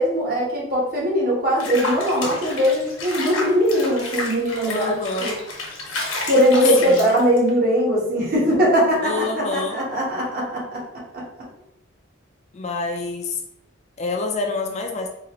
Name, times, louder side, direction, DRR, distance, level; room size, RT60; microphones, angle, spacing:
voice 1, 0.0-4.9 5.2-5.3 6.3-9.2 9.5-10.8 11.1-11.2, equal, 45° right, -5 dB, 1.3 m, -20 dB
Water / Bathtub (filling or washing), 1.6-7.5, left 2 dB, 90° left, 1.0 m, -30 dB
voice 2, 4.7-5.4 5.9-6.1 6.8-7.1 9.0-9.8 12.5-13.4 14.0-15.1, left 3 dB, 35° left, 3 dB, 0.3 m, -27 dB
3.8 x 2.5 x 3.0 m, 0.77 s
head